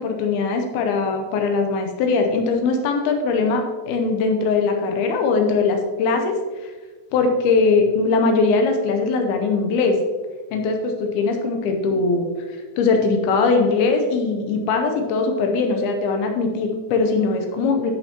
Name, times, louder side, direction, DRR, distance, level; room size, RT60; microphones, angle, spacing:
voice 1, 0.0-6.4 6.6-6.7 7.1-10.0 10.5-17.9, left 4 dB, 85° left, 4 dB, 2.7 m, -21 dB
11.0 x 7.2 x 2.9 m, 1.4 s
omnidirectional pair, 4.3 m